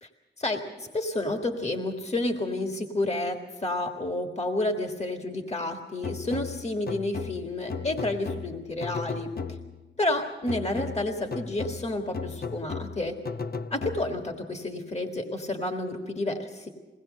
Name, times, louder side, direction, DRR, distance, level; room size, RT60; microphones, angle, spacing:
voice 1, 0.4-9.3 10.0-13.2 13.7-16.7, left 2 dB, 35° left, 3 dB, 1.7 m, -30 dB
sound 1, 6.0-9.9 10.5-14.4, left 5 dB, 50° left, 0.7 m, -36 dB
21.5 x 18.5 x 6.6 m, 1.3 s
wide cardioid pair, 105°, 20 cm